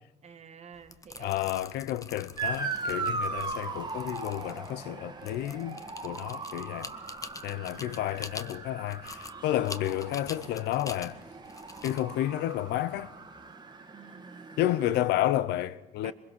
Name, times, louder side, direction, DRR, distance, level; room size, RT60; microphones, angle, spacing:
voice 1, 0.2-1.4 7.5-8.2 13.9-14.6 16.0-16.1, right 5 dB, 40° right, 1.7 m, -50 dB
sound 1, 0.7-13.5, left 3 dB, 20° left, 1.0 m, -46 dB
voice 2, 1.2-6.9 7.4-11.2 11.8-13.1 14.6-16.1, left 13 dB, 80° left, 0.8 m, -31 dB
Motor vehicle (road) / Siren, 2.4-15.0, right 4 dB, 25° right, 1.6 m, -39 dB
23.0 x 21.5 x 6.2 m
cardioid pair, 110°, 17 cm